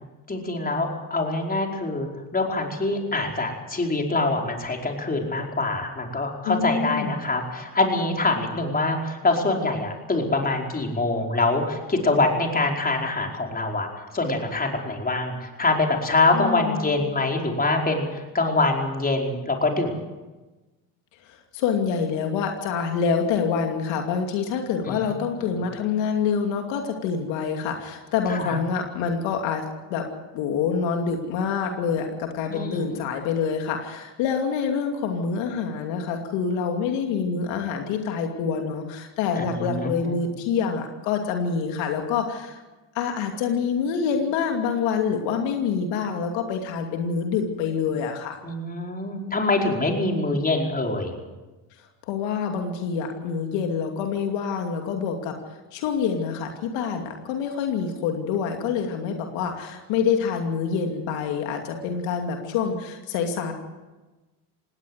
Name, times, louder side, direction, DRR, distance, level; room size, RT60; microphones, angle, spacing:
voice 1, 0.3-19.9 24.9-25.1 25.4-25.5 28.3-28.6 32.5-32.8 39.4-40.1 48.4-51.1 61.8-62.3, left 2 dB, 20° left, 1 dB, 4.9 m, -25 dB
voice 2, 6.4-7.2 16.3-17.0 21.3-30.1 30.3-42.6 42.9-48.4 52.1-55.4 55.7-63.5, left 6 dB, 75° left, 3 dB, 2.7 m, -26 dB
18.5 x 18.5 x 8.1 m, 1.2 s
supercardioid pair, 90°, 45 cm